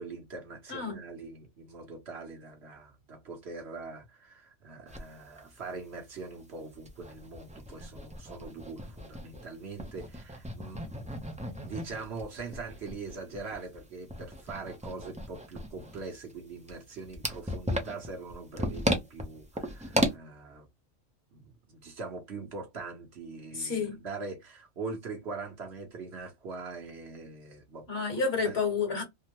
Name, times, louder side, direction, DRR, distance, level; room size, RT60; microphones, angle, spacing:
voice 1, 0.0-11.2 11.6-20.7 21.3-28.0 28.4-28.6, right 4 dB, 60° right, 1.2 m, -42 dB
voice 2, 0.7-1.0 23.5-24.0 27.9-29.0, left 4 dB, 55° left, 1.6 m, -30 dB
sound 1, 4.9-5.0 5.4-5.5 5.8-5.9 6.4-9.5 9.8-20.1, equal, 10° right, 0.4 m, -35 dB
3.5 x 2.1 x 2.9 m
omnidirectional pair, 1.3 m